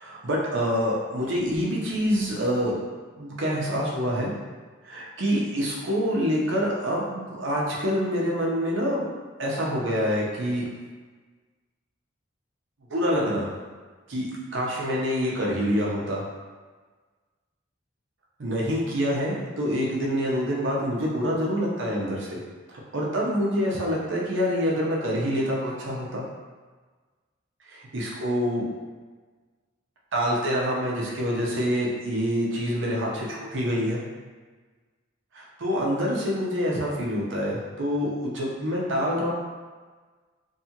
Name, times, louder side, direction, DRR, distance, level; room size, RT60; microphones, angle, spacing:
voice 1, 0.0-2.8 3.2-4.3 4.8-9.1 9.4-10.7 12.9-13.5 14.1-16.2 18.4-22.4 22.7-26.2 27.7-28.6 30.1-34.0 35.3-39.3, equal, 75° right, -4 dB, 0.7 m, -26 dB
2.7 x 2.4 x 2.8 m, 1.4 s
head